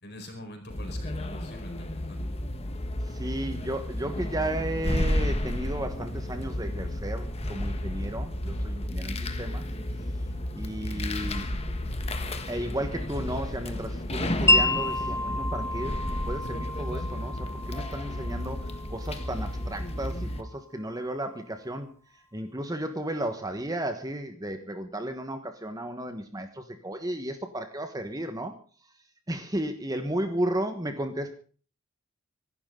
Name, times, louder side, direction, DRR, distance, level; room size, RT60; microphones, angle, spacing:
voice 1, 0.0-2.2, left 1 dB, 50° left, 5 dB, 4.8 m, -44 dB
sound 1, 0.7-20.4, left 1 dB, 30° left, 1.4 m, -32 dB
voice 2, 3.0-9.6 10.5-11.6 12.5-21.9 22.3-28.6 29.3-31.3, right 1 dB, 15° right, 7 dB, 1.3 m, -34 dB
Wind chime, 14.5-20.6, left 2 dB, 10° left, 0.8 m, -30 dB
24.5 x 12.0 x 3.9 m, 0.41 s
head